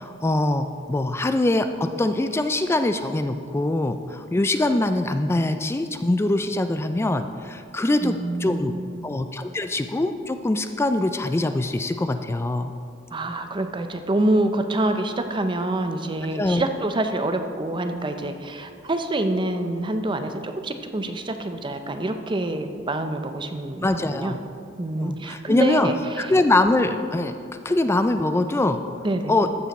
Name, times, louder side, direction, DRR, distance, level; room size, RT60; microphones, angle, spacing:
voice 1, 0.0-8.1 8.4-8.7 9.0-12.7 16.3-16.7 23.8-24.4 25.0-25.9 26.2-27.3 27.6-28.8 29.3-29.5, left 2 dB, 15° left, 9 dB, 0.3 m, -23 dB
voice 2, 8.0-9.1 13.1-24.4 24.8-26.0 29.0-29.4, right 2 dB, 25° right, 7 dB, 0.6 m, -26 dB
14.0 x 6.8 x 4.1 m, 2.3 s
head